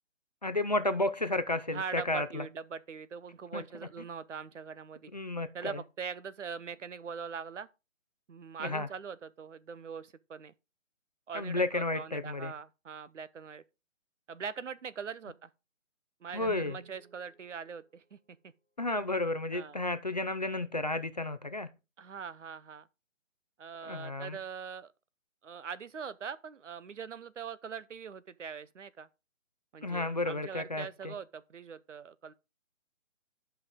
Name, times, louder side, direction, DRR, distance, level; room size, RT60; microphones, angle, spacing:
voice 1, 0.4-2.4 3.5-3.6 5.1-5.8 8.6-8.9 11.3-12.5 16.3-16.8 18.8-21.7 23.8-24.4 29.8-31.1, left 2 dB, 35° left, 0.5 m, -32 dB
voice 2, 1.7-5.1 5.5-7.7 8.3-10.5 11.3-13.6 14.3-15.5 16.2-18.2 18.4-18.5 19.5-19.8 22.0-22.9 23.6-24.9 25.4-29.1 29.7-32.3, right 6 dB, 65° right, 0.8 m, -42 dB
Guitar, 16.4-19.0, right 4 dB, 5° left, 2.2 m, -53 dB
10.5 x 5.7 x 3.6 m
figure-of-eight pair, 160°, 39 cm